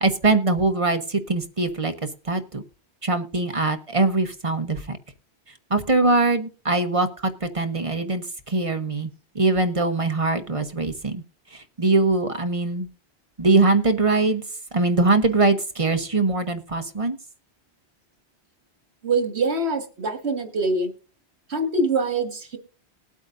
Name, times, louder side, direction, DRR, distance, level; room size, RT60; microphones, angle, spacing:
voice 1, 0.0-1.9 2.2-2.6 3.0-5.0 5.7-9.1 9.3-11.2 11.5-12.9 13.4-14.4 14.7-17.2, right 3 dB, 30° right, 7 dB, 1.0 m, -22 dB
voice 2, 19.0-20.9 21.5-22.6, right 2 dB, 80° right, 7 dB, 1.9 m, -24 dB
20.0 x 8.4 x 2.5 m, 0.37 s
omnidirectional pair, 1.1 m